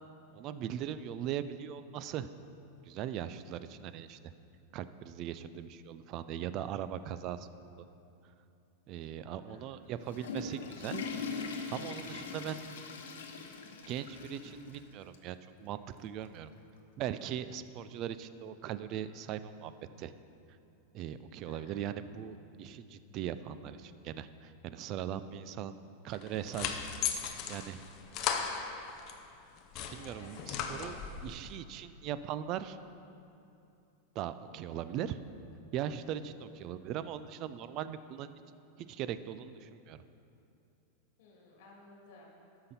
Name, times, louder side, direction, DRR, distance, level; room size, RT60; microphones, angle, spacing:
voice 1, 0.3-2.3 2.9-4.3 4.7-7.5 8.9-11.0 11.7-12.6 13.9-16.5 17.0-19.7 20.0-20.1 20.9-25.7 26.0-26.8 27.5-27.8 28.1-28.2 29.9-32.8 34.2-35.2 35.7-38.3 38.8-40.0, right 10 dB, 35° right, 13 dB, 0.3 m, -39 dB
voice 2, 9.3-9.6 21.4-21.8 24.7-25.3 30.0-30.5 36.3-36.9 41.2-42.3, left 3 dB, 55° left, -3 dB, 2.3 m, -57 dB
Water / Toilet flush, 9.8-14.8 15.1-15.2 16.0-16.1 17.4-17.5, left 5 dB, 90° left, 1.0 m, -41 dB
sound 1, 26.1-29.2 29.6-31.3, left 7 dB, 35° left, 0.6 m, -37 dB
13.0 x 5.8 x 4.2 m, 2.7 s
supercardioid pair, 160°, 0 cm